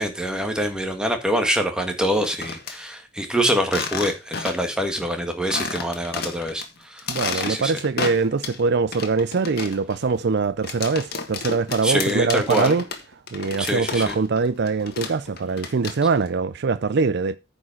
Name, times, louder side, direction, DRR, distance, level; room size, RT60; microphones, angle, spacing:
voice 1, 0.0-7.7 11.8-12.8 13.6-14.2, equal, 5° right, 1.8 m, -25 dB
sound 1, 2.1-2.8 3.6-4.8 5.1-5.2 5.5-6.7 7.0-8.6 8.9-14.4 14.7-16.3, left 5 dB, 55° left, 1.7 m, -31 dB
voice 2, 7.1-12.8 13.3-17.4, right 4 dB, 60° right, 0.5 m, -23 dB
9.6 x 5.4 x 5.9 m
head